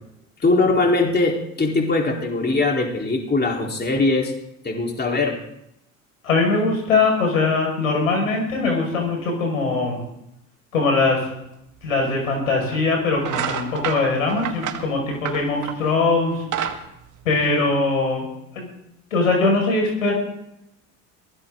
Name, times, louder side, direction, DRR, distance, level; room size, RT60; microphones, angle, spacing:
voice 1, 0.4-4.3 4.6-5.4, left 3 dB, 25° left, 1 dB, 3.9 m, -21 dB
voice 2, 6.2-10.0 10.7-11.3 11.8-16.4 17.2-18.3 18.5-18.7 19.1-20.1, left 3 dB, 90° left, 1 dB, 5.6 m, -21 dB
sound 1, 11.9-12.0 12.6-12.8 13.2-15.9 16.3-17.9, right 9 dB, 50° right, 2.2 m, -29 dB
22.5 x 16.5 x 3.8 m, 0.82 s
hypercardioid pair, 70°, 39 cm